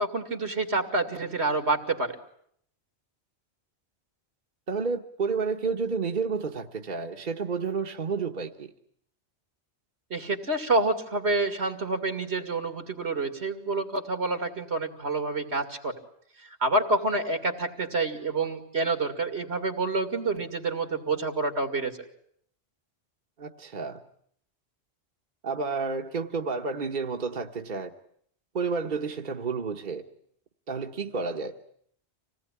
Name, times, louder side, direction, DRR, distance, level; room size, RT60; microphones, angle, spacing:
voice 1, 0.0-2.2 10.1-15.9 16.6-22.0, right 2 dB, 85° right, 6 dB, 2.8 m, -28 dB
voice 2, 4.7-8.7 23.4-24.0 25.4-27.9 28.5-30.0 30.7-31.5, right 4 dB, 50° right, 4 dB, 1.3 m, -30 dB
26.5 x 18.5 x 9.9 m, 0.68 s
omnidirectional pair, 1.1 m